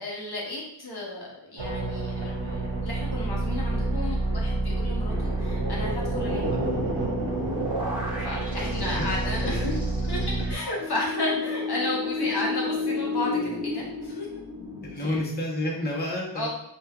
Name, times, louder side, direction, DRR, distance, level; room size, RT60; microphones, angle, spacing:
voice 1, 0.0-6.6 8.2-9.7 10.1-10.2 10.5-14.3 15.0-15.2 16.3-16.5, left 2 dB, 55° left, -3 dB, 0.7 m, -33 dB
sound 1, 1.6-10.5, right 2 dB, 60° right, 0.8 m, -28 dB
sound 2, 5.1-15.2, left 3 dB, 5° right, 1.2 m, -33 dB
voice 2, 8.6-9.7 14.8-16.5, left 1 dB, 20° left, -3 dB, 0.8 m, -31 dB
3.2 x 2.2 x 2.3 m, 0.77 s
cardioid pair, 45°, 46 cm